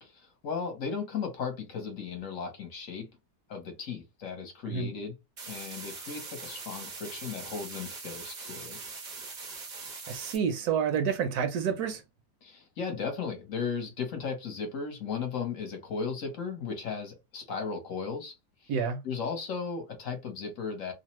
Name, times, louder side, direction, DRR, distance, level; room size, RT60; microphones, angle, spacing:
voice 1, 0.0-3.1 3.5-5.1 5.5-8.8 12.4-18.3 18.6-18.7 19.0-20.9, left 5 dB, 60° left, 1.1 m, -36 dB
sound 1, 5.4-10.4, right 4 dB, 50° right, 0.5 m, -42 dB
voice 2, 10.1-12.0 18.7-19.0, right 7 dB, 75° right, 1.0 m, -29 dB
2.9 x 2.0 x 2.9 m
omnidirectional pair, 1.7 m